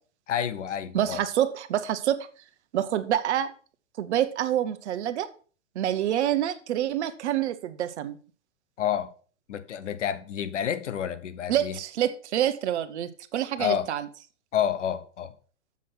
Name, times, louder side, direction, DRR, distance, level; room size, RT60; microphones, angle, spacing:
voice 1, 0.3-1.2 8.8-9.1 9.5-11.8 13.6-13.9 14.5-15.3, left 9 dB, 70° left, 1.1 m, -29 dB
voice 2, 0.9-2.3 2.7-3.5 4.0-5.3 5.7-8.2 11.5-14.1, right 11 dB, 60° right, 1.1 m, -27 dB
7.3 x 6.2 x 6.0 m
hypercardioid pair, 110°, 37 cm